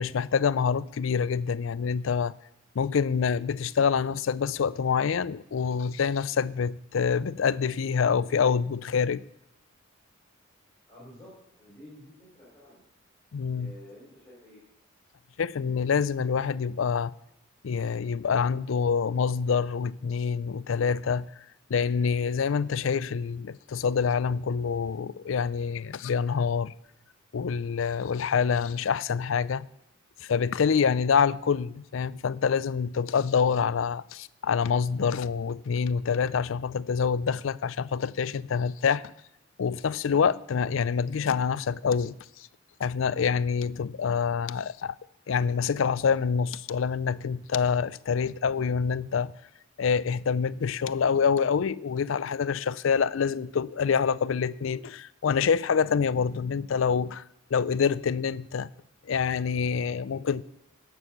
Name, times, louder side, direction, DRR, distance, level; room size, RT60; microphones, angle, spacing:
voice 1, 0.0-2.3 2.8-9.2 13.3-13.7 15.4-17.1 17.6-21.3 21.7-26.7 27.3-29.7 30.2-39.0 39.6-42.5 42.8-45.0 45.3-49.3 49.8-57.2 57.5-58.7 59.0-60.4, left 6 dB, 70° left, 0.4 m, -26 dB
voice 2, 10.9-12.8 13.5-14.6, left 1 dB, 10° left, 5.7 m, -50 dB
17.0 x 6.3 x 6.6 m
head